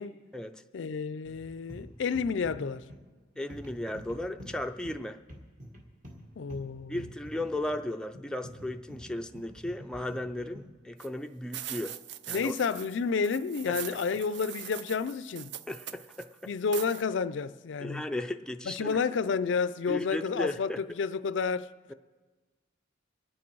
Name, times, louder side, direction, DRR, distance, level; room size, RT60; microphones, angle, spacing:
voice 1, 0.7-2.9 6.4-7.1 12.3-15.5 16.5-18.0 18.7-21.7, left 5 dB, 70° left, 0.4 m, -30 dB
sound 1, 1.2-10.8, equal, 45° right, 1.7 m, -48 dB
voice 2, 3.4-5.2 6.9-12.0 12.3-12.5 13.7-13.8 15.7-16.5 17.8-19.0 19.9-20.8, left 1 dB, 5° left, 0.4 m, -35 dB
Snow and shovel, 11.0-11.1 11.5-13.0 13.2-16.2 16.7-17.0, right 11 dB, 60° right, 0.4 m, -42 dB
24.0 x 8.6 x 4.6 m
head